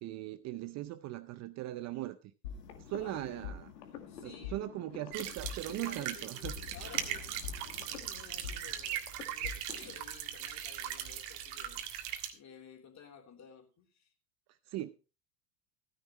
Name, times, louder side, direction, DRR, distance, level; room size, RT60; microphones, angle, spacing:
voice 1, 0.0-2.3 2.8-3.7 4.2-6.6 14.7-14.9, right 15 dB, 35° right, 0.6 m, -39 dB
sound 1, 2.4-10.0, left 7 dB, 75° left, 2.0 m, -46 dB
voice 2, 3.0-3.5 4.1-4.7 5.7-9.0 9.3-11.8 12.3-14.1, left 6 dB, 35° left, 3.3 m, -54 dB
sound 2, 5.1-12.3, right 11 dB, 50° right, 1.8 m, -39 dB
15.0 x 9.9 x 3.1 m
hypercardioid pair, 90°, 49 cm